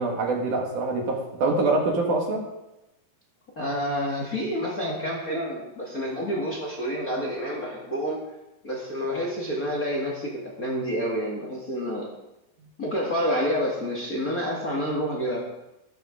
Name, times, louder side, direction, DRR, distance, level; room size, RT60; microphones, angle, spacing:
voice 1, 0.0-2.4, right 3 dB, 65° right, 1 dB, 3.2 m, -25 dB
voice 2, 3.6-8.2 8.6-12.1 12.8-15.4, equal, 30° left, -3 dB, 2.0 m, -28 dB
14.0 x 12.5 x 3.8 m, 0.93 s
omnidirectional pair, 4.1 m